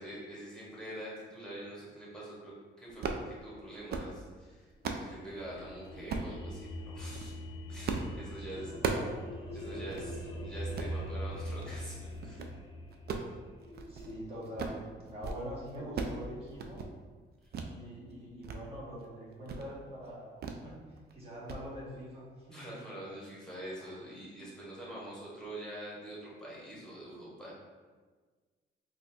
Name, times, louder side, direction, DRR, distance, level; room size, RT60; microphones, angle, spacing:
voice 1, 0.0-4.7 5.0-6.7 6.9-7.3 7.7-8.7 9.5-12.4 22.5-27.5, right 1 dB, 5° left, -7 dB, 1.3 m, -45 dB
sound 1, 2.9-3.3 3.7-4.1 4.5-5.1 6.1-6.4 7.0-7.3 7.9-8.1 8.4-9.2 9.5-9.6 9.9-10.1 10.6-11.0 11.5-11.8 12.1-12.5 12.9-14.2 14.4-14.8 15.1-15.4 15.7-16.2 16.5-16.9 17.5-17.7 18.1-18.6 18.9-19.0 19.4-19.7 20.4-20.6 21.0-21.2 21.5-21.6, right 4 dB, 55° right, 0.4 m, -37 dB
sound 2, 4.8-14.2, equal, 25° left, 0.6 m, -42 dB
voice 2, 8.2-9.2 9.5-10.1 13.9-16.8 17.6-20.8 21.1-22.6 23.8-24.0, equal, 30° right, -6 dB, 1.3 m, -44 dB
4.0 x 2.5 x 2.7 m, 1.4 s
cardioid pair, 90°, 20 cm